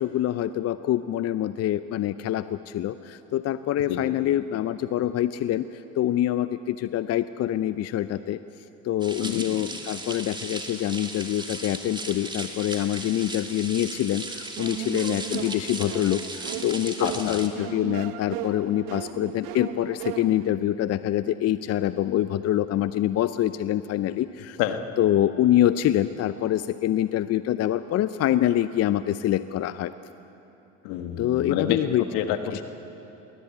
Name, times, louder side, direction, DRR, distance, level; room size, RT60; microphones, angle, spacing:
voice 1, 0.0-2.4 2.7-2.9 3.3-5.6 6.0-6.5 6.9-8.4 8.9-14.2 14.6-16.2 16.6-24.3 25.0-29.9 31.2-32.0, left 12 dB, 45° left, 13 dB, 0.6 m, -25 dB
sound 1, 9.0-17.5, right 2 dB, 10° right, 2.5 m, -37 dB
sound 2, 14.6-20.6, right 12 dB, 70° right, 1.0 m, -36 dB
voice 2, 17.0-17.4 24.6-24.8 30.8-31.8 32.1-32.6, left 11 dB, 70° left, 8 dB, 1.6 m, -28 dB
21.0 x 18.0 x 8.4 m, 3.0 s
hypercardioid pair, 70°, 37 cm